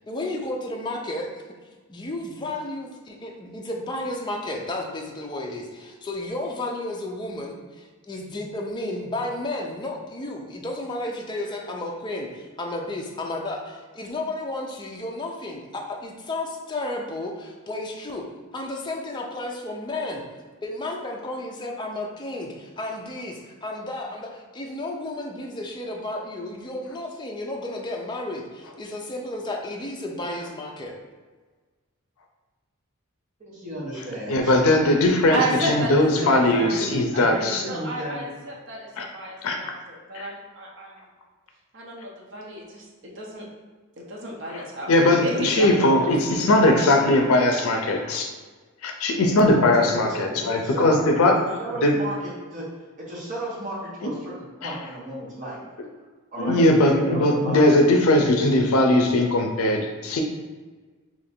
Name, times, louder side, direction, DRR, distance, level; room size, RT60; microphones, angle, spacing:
voice 1, 0.1-1.3 1.9-18.2 18.5-20.2 20.6-31.0, left 2 dB, 20° left, 0 dB, 0.4 m, -32 dB
voice 2, 33.4-34.5 36.0-38.2 49.6-51.0 51.4-52.7 53.0-55.6 56.3-57.9, right 1 dB, 35° right, -7 dB, 1.1 m, -34 dB
voice 3, 34.3-37.6 39.0-39.1 39.4-39.6 40.1-40.3 44.5-48.3 48.8-51.4 51.8-52.0 54.6-54.8 56.4-60.2, left 1 dB, 80° left, 3 dB, 0.5 m, -20 dB
voice 4, 35.3-35.9 36.2-37.0 37.7-38.9 39.1-40.9 41.7-43.5 44.0-46.4 46.7-47.4, right 1 dB, 55° right, -3 dB, 0.6 m, -32 dB
2.9 x 2.5 x 4.3 m, 1.4 s
head